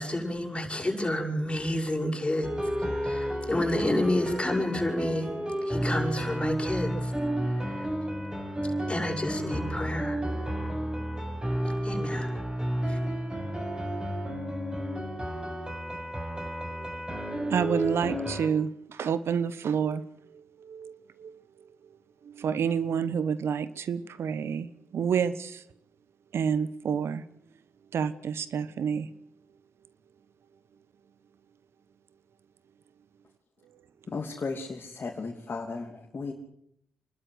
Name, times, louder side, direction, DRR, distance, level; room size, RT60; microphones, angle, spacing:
voice 1, 0.0-2.5 3.0-5.3 5.7-7.1 8.9-10.2 11.8-12.3 12.9-13.0, left 1 dB, 20° left, 0 dB, 7.1 m, -29 dB
sound 1, 2.4-18.5, equal, 15° right, 5.8 m, -32 dB
voice 2, 17.5-20.1 20.6-21.3 22.3-24.7 24.9-25.6 26.3-27.2 27.9-29.1, right 7 dB, 70° right, 15 dB, 1.1 m, -29 dB
voice 3, 34.1-36.3, left 4 dB, 45° left, 0 dB, 3.0 m, -35 dB
27.5 x 12.5 x 8.0 m, 0.74 s
supercardioid pair, 45°, 5 cm